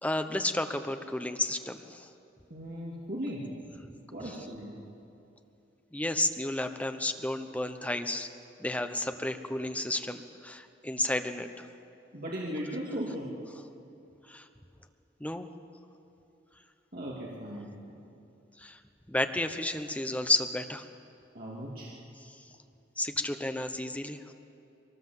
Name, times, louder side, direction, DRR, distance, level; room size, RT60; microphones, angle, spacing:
voice 1, 0.0-2.1 4.2-4.3 5.9-8.3 8.6-11.7 14.3-14.5 15.2-15.5 18.6-18.8 19.1-20.9 22.2-22.5 23.0-24.2, left 1 dB, 10° left, 7 dB, 1.0 m, -32 dB
voice 2, 2.5-3.5 4.1-4.7 12.1-13.3 16.9-17.9 21.3-21.9, equal, 55° right, -5 dB, 2.9 m, -37 dB
22.5 x 19.0 x 7.9 m, 2.8 s
head